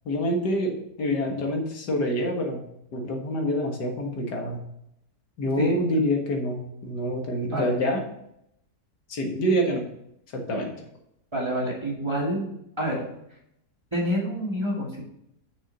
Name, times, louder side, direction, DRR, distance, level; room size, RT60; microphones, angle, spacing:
voice 1, 0.1-2.6 2.9-4.6 5.4-8.0 9.1-9.9 10.3-10.7, equal, 80° left, 2 dB, 2.1 m, -26 dB
voice 2, 11.3-12.5 12.8-13.0 13.9-15.0, equal, 15° right, -3 dB, 2.2 m, -27 dB
6.5 x 6.4 x 5.7 m, 0.78 s
omnidirectional pair, 1.8 m